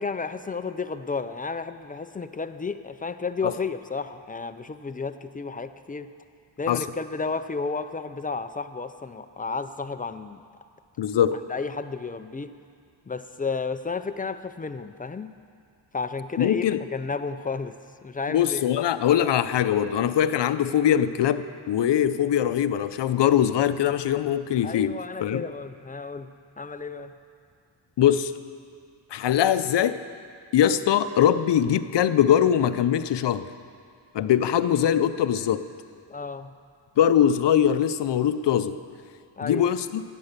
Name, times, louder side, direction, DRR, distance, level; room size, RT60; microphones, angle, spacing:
voice 1, 0.0-6.1 6.6-10.4 11.5-12.6 13.1-15.3 15.9-16.6 16.9-17.7 18.0-18.6 24.6-26.3 26.6-27.1 36.1-36.5 39.4-39.7, left 4 dB, 20° left, 10 dB, 0.3 m, -32 dB
voice 2, 11.0-11.4 16.4-16.8 18.3-25.4 28.0-28.3 29.1-30.0 30.5-33.5 34.1-35.6 37.0-38.8 39.4-40.0, left 10 dB, 65° left, 12 dB, 0.6 m, -22 dB
15.5 x 9.2 x 6.6 m, 2.2 s
wide cardioid pair, 155°, 46 cm